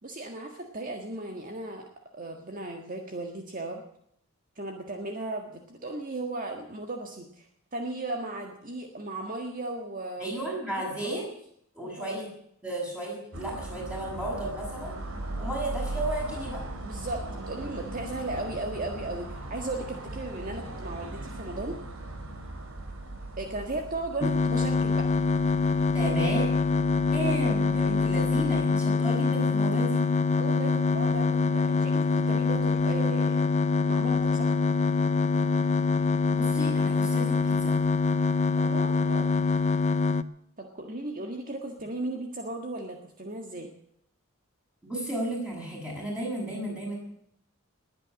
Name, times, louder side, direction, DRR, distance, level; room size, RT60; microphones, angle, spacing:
voice 1, 0.0-1.8 2.1-3.8 4.6-10.3 11.0-11.2 11.8-12.2 16.8-21.8 23.4-25.1 30.4-33.4 33.9-34.6 38.6-39.3 40.6-43.7, right 2 dB, 40° right, 3 dB, 1.7 m, -36 dB
voice 2, 10.2-11.2 11.7-12.3 12.6-14.9 15.4-16.6 25.9-26.5 27.1-30.0 36.3-37.8 44.8-46.9, right 1 dB, 5° right, -2 dB, 7.3 m, -33 dB
sound 1, 13.3-28.7, right 2 dB, 65° right, 3.4 m, -39 dB
sound 2, 24.2-40.2, left 4 dB, 30° left, 0.6 m, -24 dB
20.5 x 9.2 x 7.7 m, 0.71 s
head